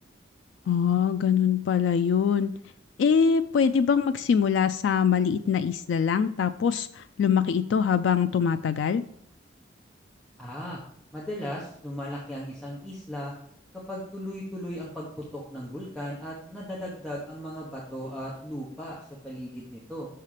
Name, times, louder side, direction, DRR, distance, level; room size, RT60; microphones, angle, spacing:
voice 1, 0.7-2.5 3.0-9.0, left 7 dB, 85° left, 10 dB, 0.3 m, -23 dB
voice 2, 10.4-10.8 11.1-13.3 13.9-20.1, equal, 5° left, -6 dB, 1.1 m, -37 dB
6.5 x 5.6 x 4.9 m, 0.66 s
head